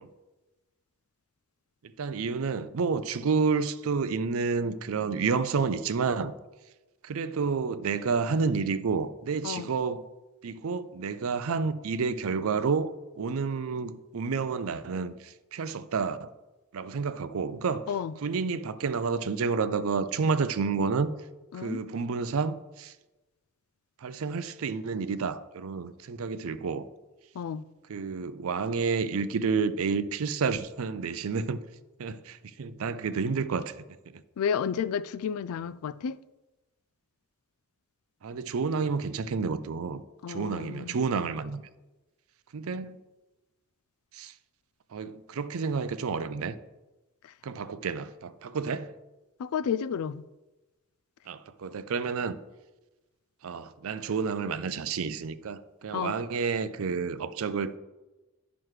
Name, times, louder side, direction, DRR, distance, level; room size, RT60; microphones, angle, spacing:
voice 1, 2.0-6.3 7.0-10.0 10.4-16.3 16.7-17.8 18.2-21.1 21.5-22.9 24.0-26.9 27.9-31.6 32.0-34.2 38.2-40.0 40.3-41.6 42.5-43.0 44.1-44.3 44.9-46.6 47.4-48.9 51.3-52.4 53.4-57.8, right 5 dB, 70° right, 0.5 m, -30 dB
voice 2, 34.4-36.2 40.2-40.9 47.2-47.3 49.4-50.2 55.9-56.2, left 7 dB, 75° left, 0.3 m, -31 dB
11.0 x 6.0 x 3.2 m
head